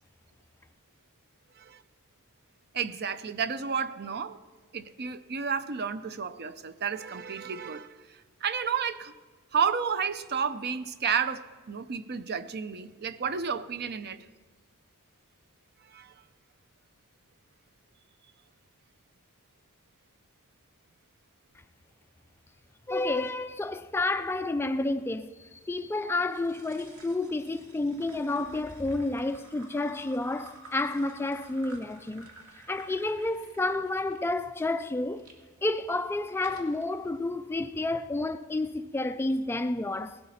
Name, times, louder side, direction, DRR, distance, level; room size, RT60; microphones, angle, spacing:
voice 1, 2.7-4.4 4.7-7.9 8.4-9.1 9.5-14.2 15.9-16.1, right 6 dB, 50° right, 0.6 m, -31 dB
voice 2, 22.9-32.3 32.7-35.3 35.6-40.2, left 2 dB, 10° left, 0.3 m, -30 dB
sound 1, 26.2-35.4 35.9-36.9, right 2 dB, 70° right, 2.4 m, -52 dB
18.0 x 12.5 x 4.2 m
head